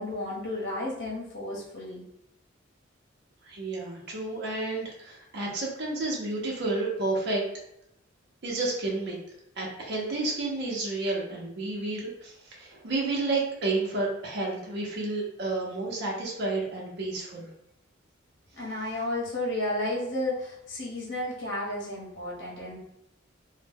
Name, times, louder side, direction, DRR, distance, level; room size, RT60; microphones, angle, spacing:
voice 1, 0.0-2.0 18.5-22.8, left 1 dB, 65° left, -5 dB, 0.8 m, -32 dB
voice 2, 3.4-7.4 8.4-9.2 9.6-17.5, right 2 dB, 55° right, -3 dB, 0.6 m, -31 dB
2.1 x 2.0 x 3.3 m, 0.77 s
head